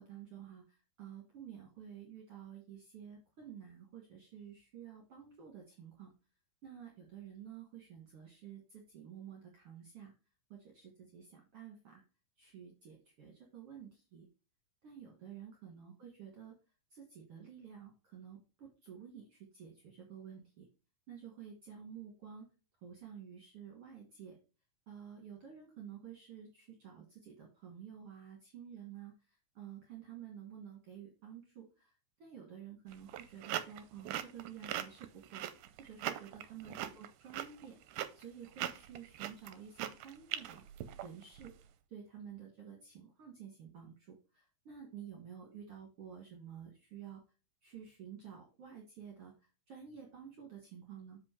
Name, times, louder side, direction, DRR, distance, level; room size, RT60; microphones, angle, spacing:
voice 1, 0.0-6.1 6.6-10.1 10.5-12.0 12.4-14.3 14.8-16.5 16.9-20.7 21.1-22.5 22.8-24.4 24.9-29.1 29.6-31.9 32.2-37.8 38.1-40.6 41.0-41.5 41.9-47.2 47.6-49.3 49.7-51.2, right 8 dB, 50° right, 0 dB, 2.2 m, -51 dB
sound 1, 32.9-41.5, right 12 dB, 75° right, 2.0 m, -41 dB
7.5 x 4.9 x 4.4 m, 0.32 s
omnidirectional pair, 3.8 m